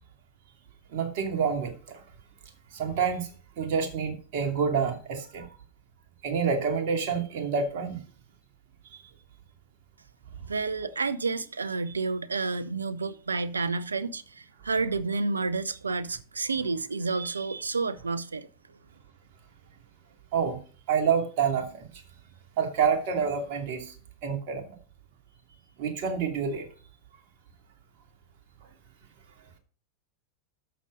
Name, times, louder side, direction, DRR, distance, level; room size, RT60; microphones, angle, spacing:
voice 1, 0.9-2.0 2.7-3.3 3.6-5.5 6.2-8.0 20.3-20.6 20.9-21.8 22.6-23.9 24.2-24.7 25.8-26.7, right 6 dB, 55° right, 2.6 m, -27 dB
voice 2, 10.5-18.5, right 4 dB, 85° right, 0.7 m, -30 dB
11.5 x 7.1 x 5.1 m
figure-of-eight pair, 90°, 0 cm